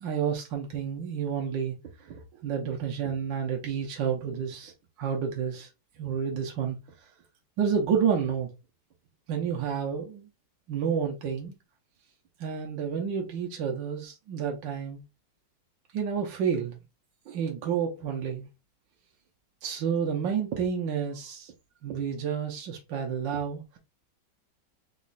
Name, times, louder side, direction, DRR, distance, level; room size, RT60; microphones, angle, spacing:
voice 1, 0.0-1.7 2.1-4.7 5.0-5.7 6.0-6.8 7.6-8.5 9.3-10.3 10.7-11.5 12.4-15.0 15.9-16.8 17.3-18.5 19.6-21.5 21.8-23.8, right 7 dB, 75° right, 1.5 m, -30 dB
4.2 x 2.4 x 4.0 m
omnidirectional pair, 2.0 m